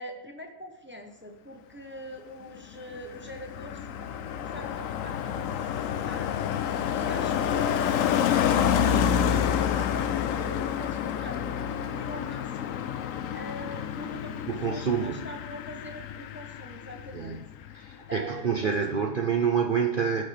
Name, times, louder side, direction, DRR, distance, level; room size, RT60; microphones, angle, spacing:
voice 1, 0.0-3.9 4.3-17.4 17.7-17.8 18.1-19.1, equal, 15° right, 3 dB, 0.5 m, -43 dB
Car passing by, 2.6-17.4 17.6-17.9, left 8 dB, 70° left, 0.8 m, -28 dB
voice 2, 14.5-15.2 17.1-17.4 17.7-20.2, right 6 dB, 75° right, 3 dB, 0.4 m, -27 dB
16.0 x 6.5 x 3.4 m, 0.91 s
omnidirectional pair, 1.8 m